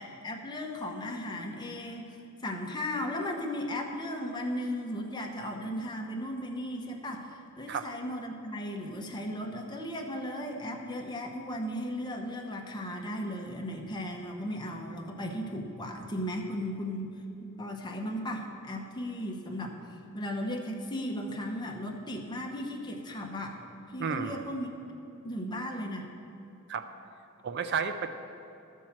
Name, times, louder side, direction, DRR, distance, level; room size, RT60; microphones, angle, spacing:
voice 1, 0.0-2.2 2.4-17.1 17.4-19.7 20.1-23.6 23.9-24.7 25.2-26.1, left 1 dB, 20° left, 1 dB, 0.9 m, -36 dB
voice 2, 24.0-24.4 26.7-26.9 27.4-28.1, right 6 dB, 50° right, 9 dB, 0.4 m, -32 dB
13.0 x 4.6 x 7.2 m, 2.7 s
head